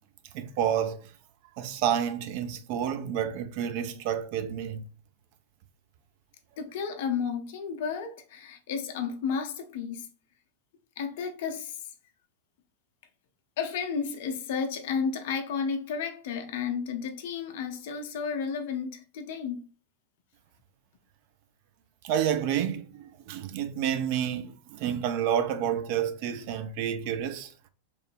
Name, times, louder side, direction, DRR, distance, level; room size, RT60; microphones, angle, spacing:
voice 1, 0.3-1.1 1.6-4.8 22.0-22.9 23.3-27.5, right 9 dB, 45° right, 0.4 m, -29 dB
voice 2, 6.6-10.1 11.0-11.9 13.6-19.6, left 6 dB, 55° left, 0.5 m, -32 dB
3.0 x 2.0 x 3.2 m
figure-of-eight pair, 90°, 0 cm